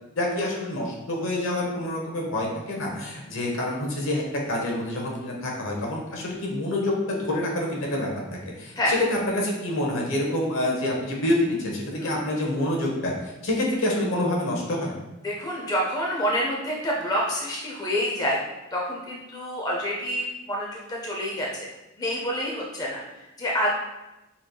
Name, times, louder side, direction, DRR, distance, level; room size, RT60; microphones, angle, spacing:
voice 1, 0.2-14.9, left 1 dB, 70° left, -2 dB, 1.1 m, -27 dB
voice 2, 15.2-18.4 18.7-21.7 22.0-23.7, equal, 20° left, -3 dB, 0.6 m, -28 dB
5.7 x 3.1 x 2.3 m, 0.98 s
head